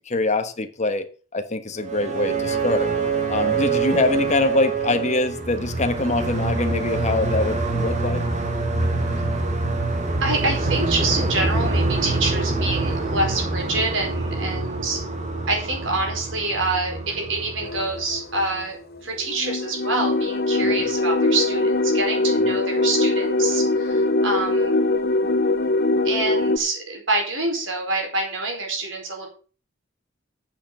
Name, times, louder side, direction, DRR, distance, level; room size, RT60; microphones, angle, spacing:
voice 1, 0.1-1.1 1.3-2.9 3.3-8.2 20.6-20.7 22.4-22.5, left 2 dB, 35° left, 1.3 m, -24 dB
sound 1, 1.8-18.6, right 3 dB, 40° right, 2.5 m, -25 dB
voice 2, 10.2-15.0 15.5-24.8 26.0-29.3, right 2 dB, 75° right, 4.6 m, -26 dB
sound 2, 17.6-18.6 19.2-26.6, left 2 dB, 55° left, 0.8 m, -22 dB
8.6 x 7.0 x 6.8 m
head